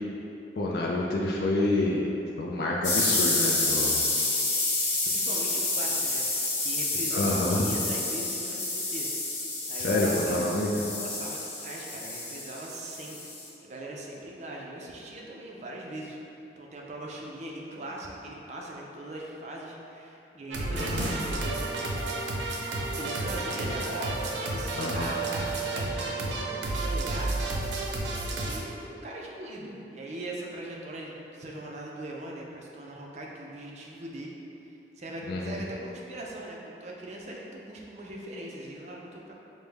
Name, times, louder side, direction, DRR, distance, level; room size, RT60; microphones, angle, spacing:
voice 1, 0.6-2.0 2.4-4.0 7.1-7.7 9.8-10.7 20.7-21.1 24.8-25.1 35.3-35.6, left 2 dB, 60° left, -3 dB, 0.3 m, -28 dB
sound 1, 2.8-13.5, left 2 dB, 80° left, 0.9 m, -29 dB
voice 2, 5.0-6.3 6.6-9.1 9.7-10.4 11.0-13.3 13.6-16.2 16.6-22.3 22.9-27.6 28.3-34.4 35.0-39.3, right 1 dB, 40° right, -2 dB, 0.4 m, -40 dB
sound 2, 20.5-28.6, right 2 dB, 90° right, 0.5 m, -31 dB
5.1 x 2.1 x 3.3 m, 2.8 s
head